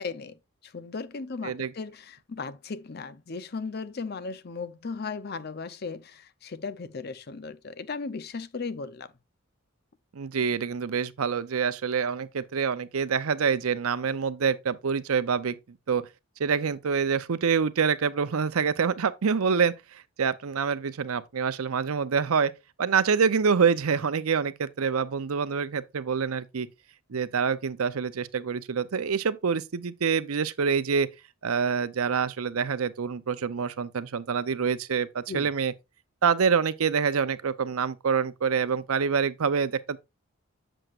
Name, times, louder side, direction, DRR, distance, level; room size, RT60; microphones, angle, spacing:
voice 1, 0.0-9.1 35.3-35.5, left 4 dB, 50° left, 0.5 m, -36 dB
voice 2, 10.1-16.1 16.4-22.5 22.8-26.7 27.1-31.1 31.4-35.7 36.2-40.0, right 6 dB, 90° right, 0.6 m, -26 dB
7.9 x 7.6 x 2.4 m
head